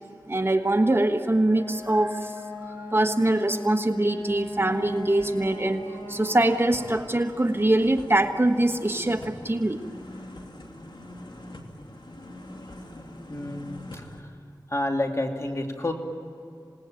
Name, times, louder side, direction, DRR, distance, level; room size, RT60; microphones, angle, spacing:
voice 1, 0.3-2.3 2.7-5.8 6.1-9.8, right 1 dB, 30° right, 6 dB, 1.3 m, -23 dB
Wind instrument woodwind instrument, 1.5-7.2, left 2 dB, 55° left, 5.3 m, -39 dB
sound 1, 2.6-2.8 3.2-14.2, left 1 dB, 70° left, 2.6 m, -44 dB
voice 2, 13.3-14.3 14.7-15.9, left 1 dB, 40° left, 2 dB, 2.8 m, -29 dB
27.0 x 19.0 x 9.0 m, 2.5 s
wide cardioid pair, 50°, 8 cm